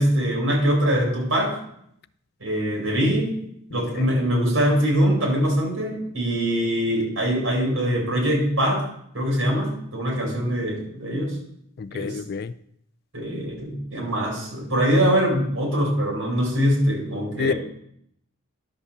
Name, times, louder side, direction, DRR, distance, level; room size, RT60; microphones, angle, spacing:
voice 1, 0.0-1.6 2.4-3.3 3.7-8.8 9.1-11.4 11.9-12.2 13.1-17.5, equal, 70° right, -2 dB, 4.9 m, -23 dB
voice 2, 3.7-4.1 11.8-12.5 17.4-17.5, left 5 dB, 45° left, 15 dB, 0.3 m, -29 dB
11.5 x 5.5 x 6.8 m, 0.72 s
head